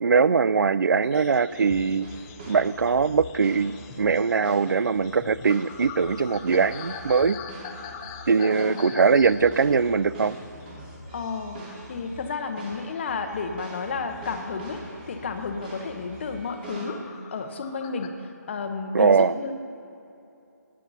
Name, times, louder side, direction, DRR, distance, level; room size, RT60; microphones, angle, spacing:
voice 1, 0.0-2.1 2.5-7.4 8.3-10.4 18.9-19.3, right 5 dB, 90° right, 17 dB, 0.4 m, -21 dB
sound 1, 1.0-11.5 11.7-12.4 12.7-14.2 14.7-14.9 15.2-15.5 16.0-18.1, left 7 dB, 15° left, 0.4 m, -44 dB
sound 2, 1.5-16.9, right 1 dB, 30° right, 2.3 m, -43 dB
voice 2, 11.1-11.6 11.9-18.2 18.5-19.5, left 4 dB, 40° left, 6 dB, 0.9 m, -32 dB
17.0 x 8.4 x 4.1 m, 2.7 s
hypercardioid pair, 165°, 10 cm